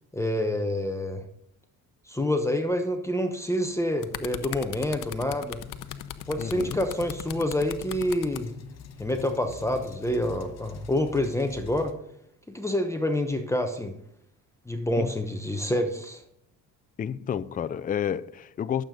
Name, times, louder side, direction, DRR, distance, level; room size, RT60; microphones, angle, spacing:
voice 1, 0.1-1.2 2.1-5.6 6.3-8.5 9.0-11.9 12.5-14.0 14.7-16.2, left 1 dB, 10° left, 1.0 m, -27 dB
sound 1, 3.7-8.4 9.3-9.5, left 12 dB, 65° left, 0.8 m, -38 dB
sound 2, 5.6-11.9, left 7 dB, 50° left, 1.1 m, -44 dB
voice 2, 6.4-6.8 15.0-15.1 17.0-18.8, left 8 dB, 25° left, 0.4 m, -30 dB
11.5 x 7.7 x 5.2 m
cardioid pair, 105°, 34 cm